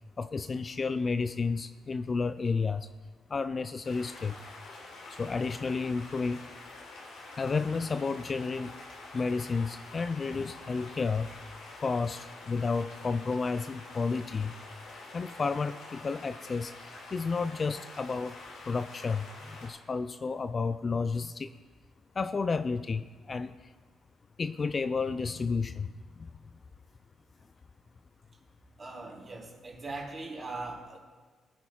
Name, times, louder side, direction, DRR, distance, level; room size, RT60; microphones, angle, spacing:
voice 1, 0.2-2.9 3.3-4.4 5.2-6.5 7.4-8.7 9.1-11.3 11.8-14.5 15.1-18.4 18.7-21.5 22.2-23.5 24.4-26.3, left 4 dB, 35° left, 10 dB, 0.4 m, -31 dB
sound 1, 3.8-19.7, left 2 dB, 85° left, 3.7 m, -47 dB
voice 2, 28.8-31.0, right 3 dB, 35° right, -2 dB, 3.6 m, -40 dB
20.0 x 10.0 x 2.4 m, 1.4 s
cardioid pair, 90°, 0 cm